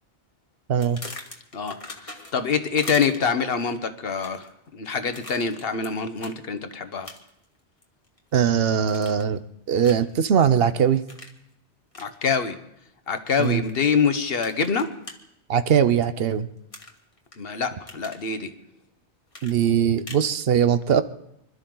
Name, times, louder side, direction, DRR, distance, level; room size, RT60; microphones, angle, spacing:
sound 1, 0.8-2.5 2.8-3.4 4.1-4.5 5.1-5.9 6.2-6.4 7.0-7.4 7.8-8.5 8.9-9.4 9.8-10.1 11.1-11.4 11.9-12.1 13.4-13.9 14.4-15.2 16.7-17.4 17.7-18.2 19.3-20.3, left 2 dB, 30° left, 1.6 m, -41 dB
voice 1, 2.0-4.5 4.7-7.1 12.0-12.6 13.1-14.9 17.4-18.5, left 5 dB, 60° left, 9 dB, 1.3 m, -25 dB
voice 2, 8.3-9.4 9.7-11.0 13.4-13.6 15.5-16.5 19.4-21.0, right 8 dB, 65° right, 13 dB, 0.9 m, -20 dB
25.5 x 12.5 x 3.9 m, 0.79 s
omnidirectional pair, 1.1 m